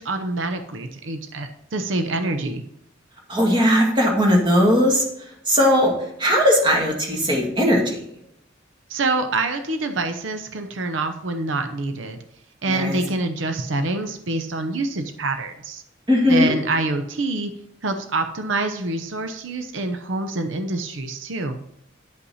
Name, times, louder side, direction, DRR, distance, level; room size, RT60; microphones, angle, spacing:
voice 1, 0.0-2.6 8.9-12.2 12.6-15.8 16.3-17.5 17.8-21.6, right 2 dB, 85° right, 7 dB, 0.7 m, -26 dB
voice 2, 3.3-5.0 5.5-5.9 6.2-8.0 12.7-13.0 16.1-16.5, equal, 25° right, 0 dB, 1.9 m, -18 dB
9.8 x 5.6 x 4.1 m, 0.76 s
head